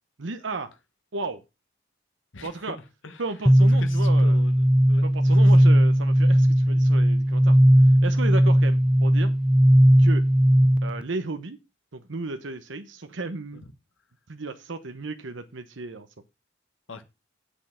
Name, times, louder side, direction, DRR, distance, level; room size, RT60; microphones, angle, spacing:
voice 1, 0.2-0.7 1.1-1.4 2.4-2.8 3.2-4.4 5.0-7.6 8.0-9.3 10.0-10.2 10.8-11.6 11.9-13.6 14.3-16.1, right 3 dB, 80° right, 0.9 m, -34 dB
voice 2, 2.3-3.2 3.8-5.5 16.9-17.0, left 3 dB, 90° left, 1.3 m, -42 dB
sound 1, 3.5-11.0, equal, 5° right, 0.6 m, -17 dB
7.9 x 6.4 x 6.1 m
head